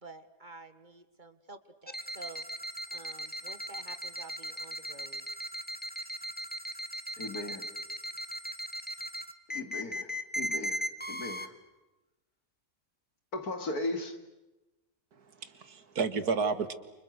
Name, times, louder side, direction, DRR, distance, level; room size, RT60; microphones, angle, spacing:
voice 1, 0.0-2.4 2.9-5.3, right 3 dB, 30° right, 9 dB, 1.8 m, -50 dB
sound 1, 1.9-11.5, equal, 5° left, 1.5 m, -38 dB
voice 2, 7.2-7.6 9.5-11.5 13.3-14.2, left 2 dB, 70° left, 8 dB, 3.1 m, -37 dB
voice 3, 15.1-16.7, right 5 dB, 75° right, 11 dB, 2.3 m, -32 dB
29.5 x 29.5 x 6.6 m, 1.0 s
omnidirectional pair, 1.7 m